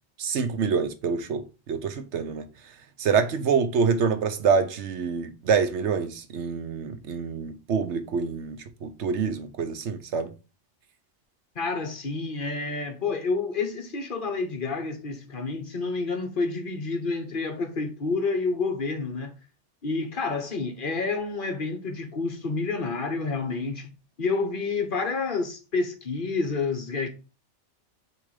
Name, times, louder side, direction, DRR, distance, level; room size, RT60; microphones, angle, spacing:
voice 1, 0.2-2.5 3.0-10.3, right 6 dB, 70° right, 1.0 m, -26 dB
voice 2, 11.5-19.3 19.8-23.9 24.2-27.1, left 4 dB, 45° left, 1.1 m, -29 dB
6.7 x 3.0 x 4.9 m
omnidirectional pair, 1.3 m